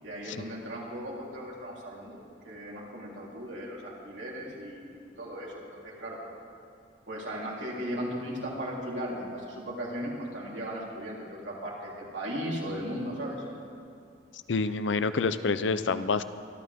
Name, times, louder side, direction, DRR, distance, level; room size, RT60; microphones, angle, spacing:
voice 1, 0.0-6.2 7.1-13.4, equal, 85° right, -5 dB, 3.6 m, -37 dB
voice 2, 14.5-16.2, left 4 dB, 80° left, 12 dB, 0.6 m, -27 dB
25.5 x 12.0 x 3.6 m, 2.4 s
head